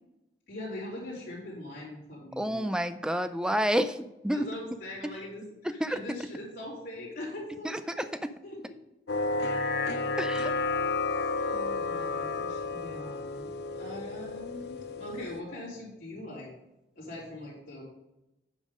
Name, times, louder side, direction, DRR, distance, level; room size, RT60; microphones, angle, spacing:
voice 1, 0.5-2.7 4.3-8.1 8.4-8.8 11.4-13.5 13.8-16.5 17.0-17.8, left 1 dB, 45° left, -8 dB, 3.3 m, -42 dB
voice 2, 2.4-4.5 5.8-6.0 7.6-8.3 10.2-10.5, equal, 5° right, 11 dB, 0.3 m, -29 dB
sound 1, 9.1-15.4, left 3 dB, 65° left, 0.6 m, -31 dB
9.2 x 5.4 x 5.0 m, 0.93 s
head